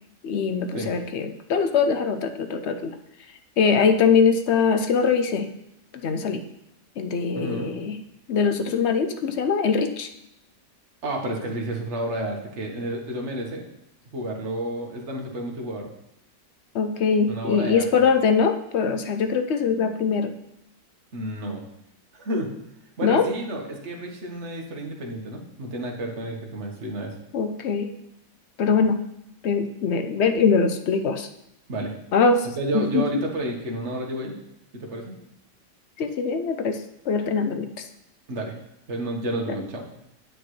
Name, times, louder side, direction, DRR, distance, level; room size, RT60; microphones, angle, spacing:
voice 1, 0.2-3.0 3.6-5.5 6.0-6.4 7.0-8.0 8.3-10.1 16.7-20.3 23.0-23.2 27.3-27.9 28.6-29.0 29.4-31.3 32.1-32.5 32.7-33.2 36.0-37.9 39.5-39.6, left 5 dB, 65° left, 7 dB, 0.6 m, -22 dB
voice 2, 7.3-7.7 11.0-13.6 14.1-15.9 17.3-17.8 21.1-21.6 22.1-22.5 23.0-27.1 31.7-31.9 32.5-34.3 34.7-35.1 38.3-38.5 38.9-39.8, right 1 dB, 40° right, 1 dB, 1.6 m, -30 dB
9.0 x 8.9 x 3.2 m, 0.80 s
omnidirectional pair, 1.9 m